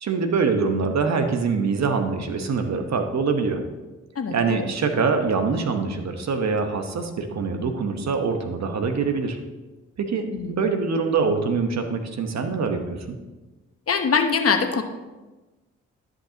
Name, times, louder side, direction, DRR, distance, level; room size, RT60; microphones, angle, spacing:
voice 1, 0.0-3.6 4.3-9.4 10.0-13.2, right 4 dB, 60° right, 6 dB, 1.1 m, -24 dB
voice 2, 4.2-4.7 10.3-10.7 13.9-14.8, left 5 dB, 50° left, 7 dB, 1.0 m, -23 dB
13.0 x 5.4 x 2.9 m, 1.2 s
supercardioid pair, 45°, 31 cm